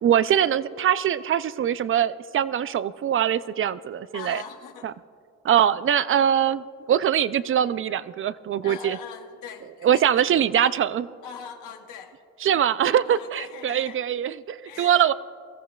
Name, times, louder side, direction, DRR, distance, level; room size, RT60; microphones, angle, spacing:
voice 1, 0.0-4.4 4.8-4.9 5.4-9.0 9.8-11.1 12.4-15.1, right 9 dB, 45° right, 16 dB, 0.4 m, -22 dB
voice 2, 4.1-4.9 8.6-10.2 10.5-10.7 11.2-12.2 13.0-14.0 14.6-15.1, left 7 dB, 90° left, 4 dB, 1.2 m, -41 dB
23.0 x 14.0 x 2.3 m, 2.3 s
cardioid pair, 90°, 30 cm